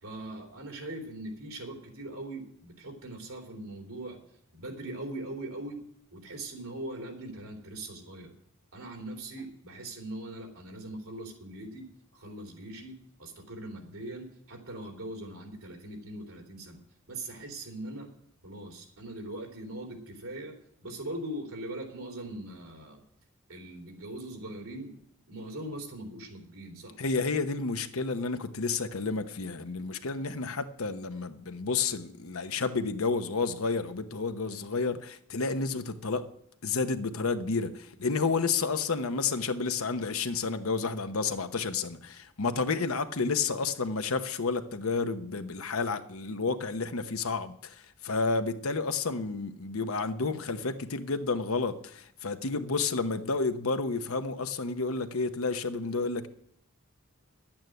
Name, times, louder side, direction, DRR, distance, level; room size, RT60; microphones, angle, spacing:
voice 1, 0.0-4.2 4.5-5.8 6.1-8.3 8.7-11.9 12.1-16.8 17.1-18.1 18.4-20.5 20.8-23.0 23.5-24.9 25.3-27.0, right 1 dB, 80° right, 3.2 m, -41 dB
voice 2, 27.0-36.3 36.6-56.3, left 4 dB, 75° left, 0.9 m, -30 dB
11.0 x 8.8 x 7.8 m
head